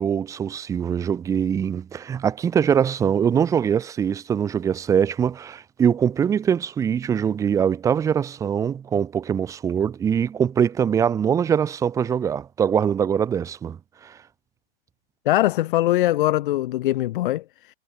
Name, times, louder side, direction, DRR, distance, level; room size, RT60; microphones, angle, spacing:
voice 1, 0.0-13.8 14.0-14.2, right 8 dB, 10° right, 0.7 m, -23 dB
voice 2, 15.3-17.7, left 15 dB, 55° left, 0.7 m, -22 dB
hypercardioid pair, 155°, 30 cm